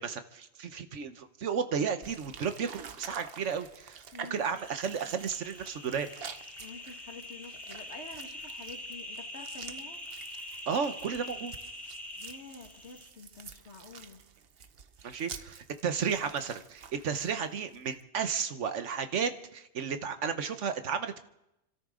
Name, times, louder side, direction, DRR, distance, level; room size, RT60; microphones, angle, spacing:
voice 1, 0.0-4.0 4.3-6.1 10.7-11.5 15.0-21.2, right 6 dB, 75° right, 9 dB, 1.3 m, -33 dB
sound 1, 2.0-18.0, right 6 dB, 55° right, 1.0 m, -49 dB
voice 2, 4.1-4.5 6.6-10.0 12.2-14.2, left 3 dB, 65° left, 3 dB, 2.2 m, -48 dB
sound 2, 4.6-13.1, left 1 dB, ahead, 3.4 m, -44 dB
29.0 x 13.0 x 3.7 m, 0.85 s
omnidirectional pair, 1.2 m